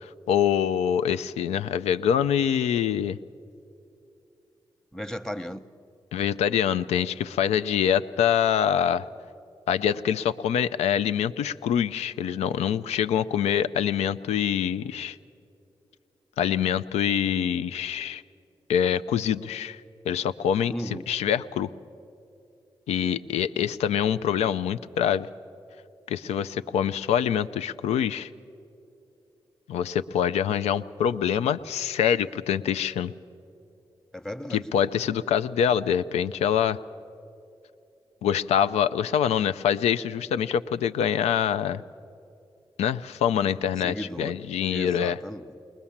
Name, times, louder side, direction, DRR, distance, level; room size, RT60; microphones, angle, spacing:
voice 1, 0.0-3.2 6.1-9.1 9.7-15.2 16.4-18.2 18.7-19.8 20.1-20.7 21.1-21.7 22.9-25.3 26.1-28.3 29.7-33.1 34.5-36.8 38.2-41.8 42.8-45.2, left 9 dB, 90° left, 12 dB, 0.4 m, -25 dB
voice 2, 4.9-5.6 20.7-21.1 34.1-34.7 43.8-44.3 44.7-45.6, equal, 5° left, 11 dB, 0.9 m, -35 dB
21.0 x 20.0 x 7.2 m, 2.7 s
supercardioid pair, 40°, 11 cm